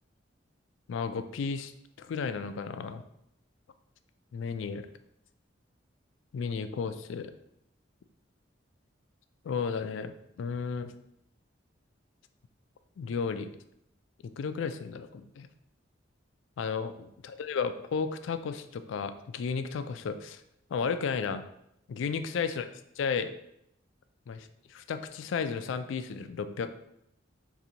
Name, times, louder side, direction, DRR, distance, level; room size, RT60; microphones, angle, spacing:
voice 1, 0.9-1.7 2.0-3.0 4.3-4.9 6.3-7.3 9.4-10.9 13.0-13.5 14.2-15.5 16.6-20.4 20.7-21.4 21.9-22.7 23.0-23.3 24.3-26.7, left 5 dB, 75° left, 11 dB, 0.3 m, -33 dB
3.9 x 2.6 x 4.2 m, 0.79 s
head